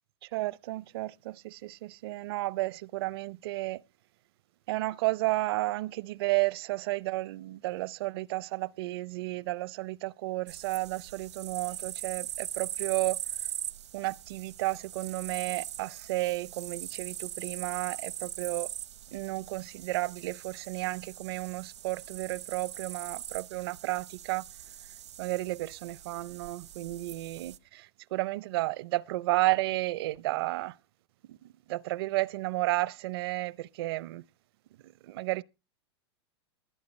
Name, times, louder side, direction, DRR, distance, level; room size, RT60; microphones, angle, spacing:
voice 1, 0.2-3.8 4.7-13.2 13.9-18.7 19.1-24.4 25.2-30.8 31.3-34.2 34.8-35.4, right 19 dB, 60° right, 0.6 m, -32 dB
sound 1, 10.5-27.6, right 10 dB, 85° right, 0.9 m, -41 dB
20.0 x 9.4 x 3.2 m
hypercardioid pair, 110°, 14 cm